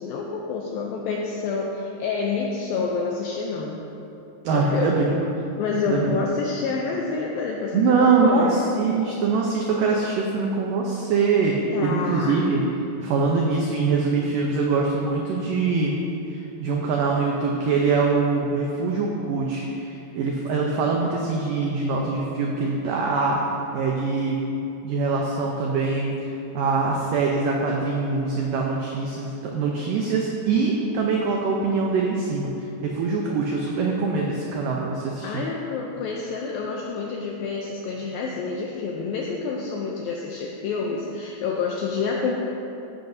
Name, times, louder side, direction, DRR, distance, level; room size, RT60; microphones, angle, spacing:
voice 1, 0.0-3.8 4.5-5.0 5.6-8.6 11.7-12.4 35.2-42.3, left 4 dB, 85° left, -1 dB, 2.1 m, -28 dB
voice 2, 4.4-5.2 5.9-6.2 7.7-12.7 13.0-16.0 16.3-23.4 23.7-24.4 24.8-35.4, right 4 dB, 90° right, -1 dB, 1.9 m, -23 dB
14.0 x 10.5 x 2.7 m, 2.9 s
omnidirectional pair, 4.9 m